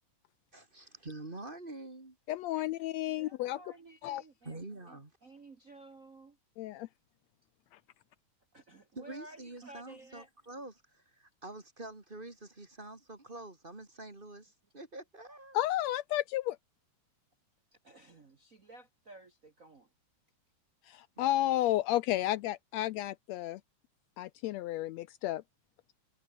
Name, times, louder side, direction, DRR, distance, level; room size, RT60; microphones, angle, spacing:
voice 1, 0.5-2.2 4.4-5.1 8.9-15.6 21.2-21.3, right 2 dB, 20° right, 2.3 m, -46 dB
voice 2, 2.3-3.6 4.0-4.2 6.6-6.9 7.7-7.8 15.5-16.6 20.8-23.6 24.2-25.4, left 14 dB, 80° left, 1.7 m, -32 dB
voice 3, 3.2-4.6 4.9-6.4 8.5-10.3 17.8-19.9, right 2 dB, 35° right, 1.5 m, -54 dB
omnidirectional pair, 3.4 m